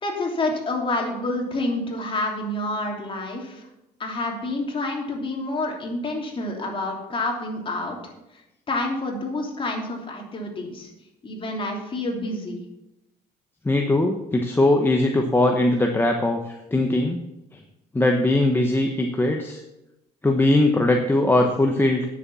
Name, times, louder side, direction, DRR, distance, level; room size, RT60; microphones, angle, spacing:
voice 1, 0.0-3.7 4.0-8.0 8.7-10.9 11.2-12.6, left 2 dB, 30° left, 0 dB, 3.0 m, -28 dB
voice 2, 13.6-17.2 17.9-19.6 20.2-22.1, left 2 dB, 15° left, 2 dB, 1.0 m, -20 dB
10.0 x 7.1 x 6.9 m, 0.92 s
cardioid pair, 110°, 17 cm